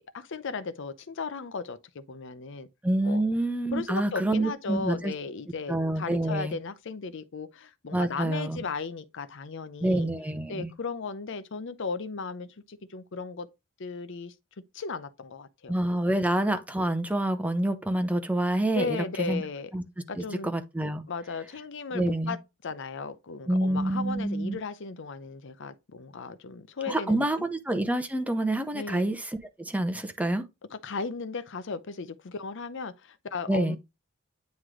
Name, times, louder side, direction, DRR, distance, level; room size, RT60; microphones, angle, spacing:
voice 1, 0.1-2.7 3.0-3.2 3.7-10.1 10.5-13.5 13.8-14.3 14.7-15.7 18.7-19.7 20.1-20.5 21.1-22.4 22.6-27.5 28.7-29.0 30.7-33.8, left 4 dB, 60° left, 0.6 m, -36 dB
voice 2, 2.8-5.1 5.7-6.6 7.9-8.6 9.8-10.7 15.7-19.4 19.7-19.8 20.2-21.0 21.9-22.4 23.5-24.6 26.9-30.4 33.5-33.8, right 1 dB, 5° right, 0.7 m, -27 dB
9.4 x 3.2 x 3.7 m
head